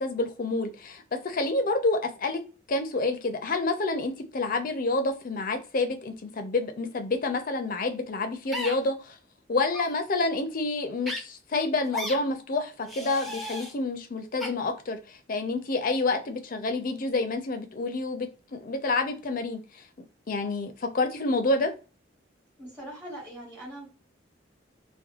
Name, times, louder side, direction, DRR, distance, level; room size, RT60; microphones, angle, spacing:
voice 1, 0.0-9.1 9.5-19.6 20.3-21.7, left 3 dB, 50° left, 0.5 m, -28 dB
sound 1, 8.5-8.7 9.7-9.9 11.0-11.2 11.9-12.2 12.8-13.7 14.4-14.5, left 1 dB, ahead, 0.5 m, -34 dB
voice 2, 22.6-23.9, right 1 dB, 15° right, 1.3 m, -41 dB
2.8 x 2.2 x 2.4 m
head